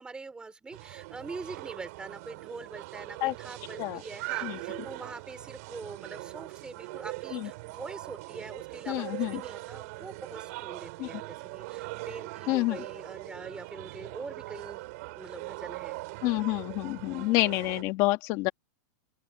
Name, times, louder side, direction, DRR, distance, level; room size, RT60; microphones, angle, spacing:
voice 1, 0.0-14.8 15.1-16.0, right 3 dB, 10° right, 4.1 m, -44 dB
sound 1, 0.7-17.8, right 24 dB, 50° right, 4.9 m, -41 dB
voice 2, 8.9-9.4 11.0-11.2 12.5-12.8 16.2-18.5, left 20 dB, 40° left, 1.7 m, -28 dB
open air
supercardioid pair, 155°, 10 cm